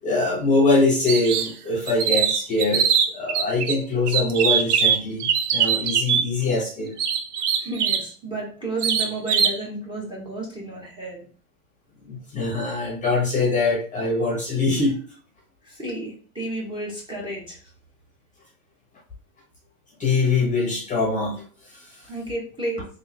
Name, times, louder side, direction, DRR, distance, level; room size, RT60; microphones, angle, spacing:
voice 1, 0.0-7.0 12.0-14.9 20.0-22.1, left 3 dB, 15° left, -2 dB, 0.9 m, -23 dB
sound 1, 1.1-1.5 1.9-3.7 4.1-6.2 7.0-8.1 8.8-9.6, right 7 dB, 85° right, 0.6 m, -22 dB
voice 2, 7.6-11.2 15.6-17.6 22.1-22.8, right 2 dB, 10° right, -3 dB, 1.0 m, -32 dB
3.6 x 2.6 x 2.7 m, 0.42 s
hypercardioid pair, 125°, 45 cm